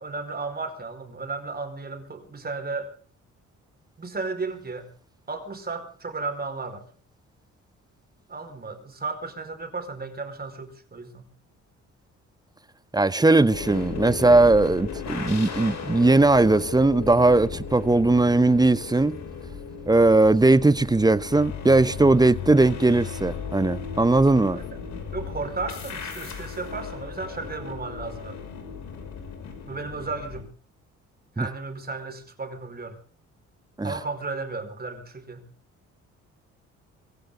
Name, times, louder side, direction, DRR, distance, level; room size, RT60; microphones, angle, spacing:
voice 1, 0.0-2.9 4.0-4.9 5.3-6.8 8.3-11.3 24.5-24.7 25.1-28.4 29.7-30.5 31.4-33.0 33.8-35.4, right 3 dB, 30° right, 4.8 m, -34 dB
voice 2, 12.9-19.2 19.9-24.6 31.4-31.5 33.8-33.9, right 2 dB, 15° right, 0.9 m, -19 dB
sound 1, 13.5-30.4, left 6 dB, 65° left, 6.1 m, -36 dB
24.5 x 15.5 x 3.8 m
cardioid pair, 90°, 30 cm